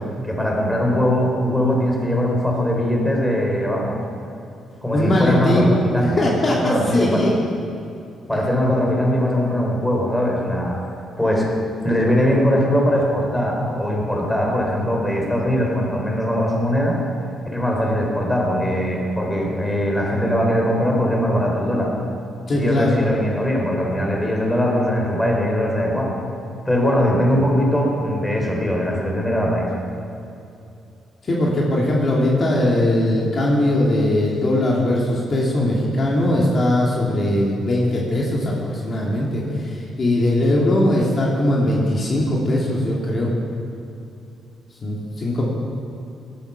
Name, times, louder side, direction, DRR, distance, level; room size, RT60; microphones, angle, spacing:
voice 1, 0.2-4.0 4.8-6.2 6.6-7.2 8.3-10.8 11.2-11.5 11.8-17.0 17.5-21.9 22.5-26.1 26.7-29.7, equal, 5° left, -1 dB, 4.2 m, -21 dB
voice 2, 4.9-7.3 8.3-8.4 22.5-23.1 31.2-43.3 44.8-45.4, left 1 dB, 40° left, -4 dB, 2.8 m, -20 dB
17.0 x 12.5 x 6.0 m, 2.6 s
cardioid pair, 90°, 0 cm